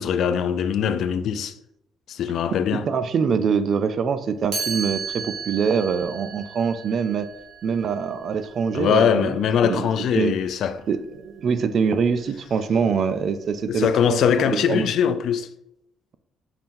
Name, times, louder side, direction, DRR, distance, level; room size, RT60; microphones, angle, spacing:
voice 1, 0.0-1.5 2.1-2.9 8.7-10.9 13.7-15.5, left 8 dB, 65° left, 0.4 m, -22 dB
voice 2, 2.7-7.3 7.6-9.4 9.6-9.9 10.2-10.3 10.9-14.2 14.5-14.9, right 6 dB, 50° right, 0.4 m, -24 dB
Chime, 4.5-10.4, right 5 dB, 70° right, 1.7 m, -35 dB
5.6 x 2.5 x 3.7 m
cardioid pair, 105°, 0 cm